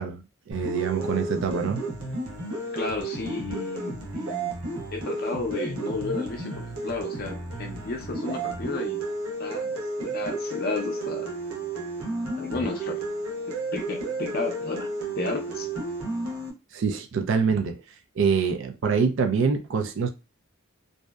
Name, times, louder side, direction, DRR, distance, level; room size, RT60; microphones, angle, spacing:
voice 1, 0.0-1.8 16.7-17.8 18.2-20.1, right 5 dB, 60° right, 0.4 m, -25 dB
sound 1, 0.5-16.5, right 2 dB, 85° right, 0.9 m, -32 dB
voice 2, 2.7-4.5 4.9-9.0 9.4-11.3 12.4-13.0 13.7-15.7, left 3 dB, 45° left, 0.5 m, -33 dB
2.6 x 2.0 x 2.2 m
head